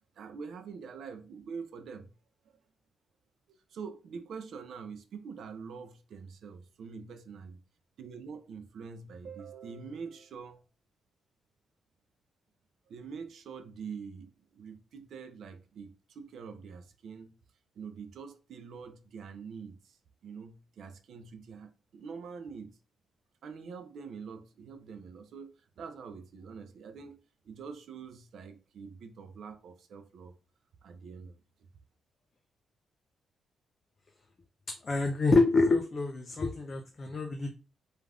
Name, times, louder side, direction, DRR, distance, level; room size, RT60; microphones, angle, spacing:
voice 1, 0.2-2.1 3.5-7.6 8.0-10.6 12.9-17.3 17.8-20.0 20.2-22.8 23.4-30.4 30.8-31.4, right 5 dB, 65° right, 0.4 m, -45 dB
voice 2, 34.8-37.5, left 3 dB, 30° left, 0.3 m, -26 dB
3.3 x 2.4 x 2.3 m
cardioid pair, 150°, 0 cm